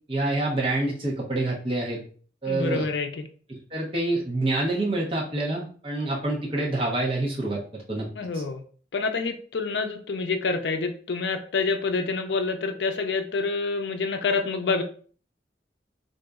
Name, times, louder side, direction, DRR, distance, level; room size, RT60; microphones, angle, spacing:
voice 1, 0.1-2.0 2.4-2.9 3.5-8.1, right 2 dB, 30° right, -4 dB, 1.0 m, -27 dB
voice 2, 2.5-3.2 8.2-8.6 8.9-14.8, left 4 dB, 75° left, 6 dB, 0.4 m, -27 dB
3.8 x 2.6 x 2.3 m, 0.43 s
head